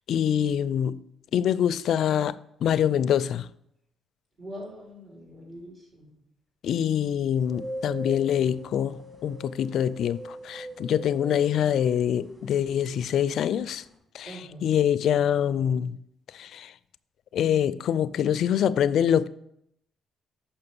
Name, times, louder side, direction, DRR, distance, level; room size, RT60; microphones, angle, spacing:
voice 1, 0.1-1.0 1.3-3.5 6.6-13.8 14.1-16.0 16.3-16.7 17.3-19.3, left 9 dB, 70° left, 0.4 m, -25 dB
voice 2, 4.4-6.1 14.2-14.6, equal, 45° right, 3.2 m, -42 dB
sound 1, 7.4-13.9, right 1 dB, 25° right, 3.0 m, -42 dB
6.8 x 5.6 x 6.9 m
cardioid pair, 90°, 0 cm